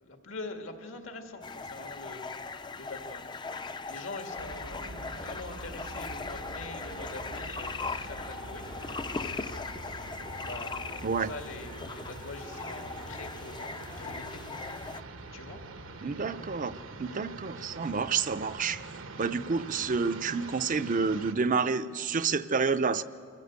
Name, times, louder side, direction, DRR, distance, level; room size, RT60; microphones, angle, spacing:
voice 1, 0.0-3.3 3.9-8.6 10.4-14.4 15.3-15.6, left 3 dB, 80° left, 5 dB, 2.0 m, -44 dB
sound 1, 1.4-15.0, left 4 dB, 20° left, 0.5 m, -39 dB
sound 2, 4.4-21.3, right 2 dB, 80° right, 1.1 m, -44 dB
voice 2, 16.0-16.7 17.0-18.8 19.2-23.0, right 5 dB, 40° right, 11 dB, 0.6 m, -29 dB
23.0 x 14.5 x 8.1 m, 2.1 s
head